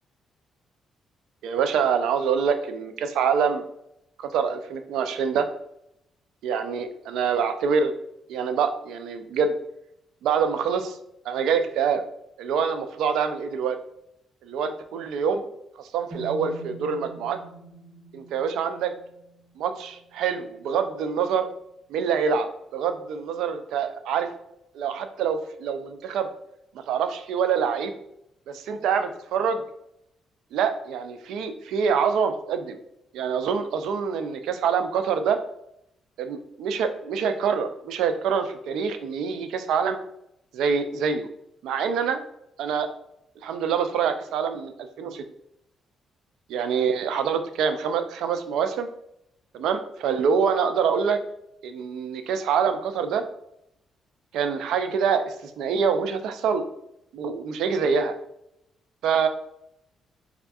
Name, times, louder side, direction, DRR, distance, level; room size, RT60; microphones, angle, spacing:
voice 1, 1.4-3.6 4.2-5.5 6.4-7.9 8.3-9.5 10.2-11.0 11.3-12.0 12.4-13.8 14.4-15.4 15.8-17.4 18.1-18.9 19.6-21.5 21.9-22.5 22.7-24.3 24.7-26.3 26.7-27.9 28.5-29.6 30.5-32.8 33.1-35.4 36.2-40.0 40.5-41.3 41.6-42.2 42.6-42.9 43.4-45.2 46.5-48.9 49.5-51.2 51.6-53.2 54.3-56.6 57.1-58.1 59.0-59.3, right 6 dB, 85° right, 9 dB, 0.4 m, -25 dB
sound 1, 16.1-20.1, right 4 dB, 35° right, 1.1 m, -44 dB
3.5 x 3.4 x 2.3 m, 0.78 s
cardioid pair, 90°, 0 cm